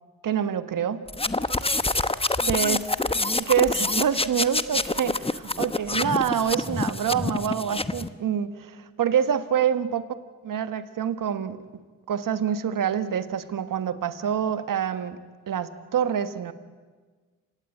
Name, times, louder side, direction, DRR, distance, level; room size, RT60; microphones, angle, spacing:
voice 1, 0.2-1.0 1.6-1.7 2.4-2.9 3.3-10.0 10.4-11.6 12.1-15.2 15.5-16.5, right 8 dB, 70° right, 11 dB, 1.5 m, -26 dB
sound 1, 1.1-8.1, left 2 dB, 15° left, 1.0 m, -26 dB
28.5 x 17.5 x 8.5 m, 1.4 s
supercardioid pair, 45°, 33 cm